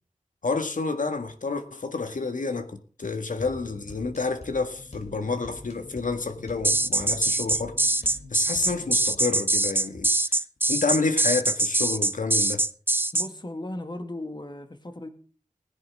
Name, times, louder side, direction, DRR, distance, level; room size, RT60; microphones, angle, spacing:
voice 1, 0.4-7.8 8.3-10.1 10.7-12.6, left 4 dB, 80° left, 1.8 m, -29 dB
sound 1, 3.4-9.1, left 2 dB, 55° left, 3.1 m, -45 dB
sound 2, 6.6-13.3, right 2 dB, 15° right, 0.6 m, -23 dB
voice 2, 13.1-15.1, left 1 dB, 35° left, 2.1 m, -36 dB
20.0 x 10.5 x 3.7 m
wide cardioid pair, 65°, 13 cm